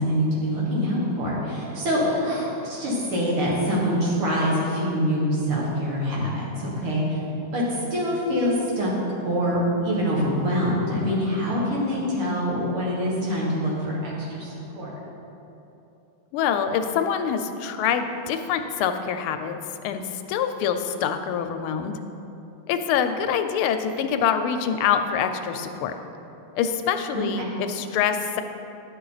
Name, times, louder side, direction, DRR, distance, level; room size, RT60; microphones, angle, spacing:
voice 1, 0.0-7.2 7.5-7.6 7.9-8.9 9.2-14.9 27.1-27.5, equal, 85° right, -5 dB, 2.7 m, -25 dB
voice 2, 16.3-19.6 19.8-21.9 22.7-25.9 26.6-28.4, left 8 dB, 85° left, 8 dB, 1.4 m, -25 dB
10.5 x 6.6 x 4.0 m, 2.9 s
omnidirectional pair, 2.4 m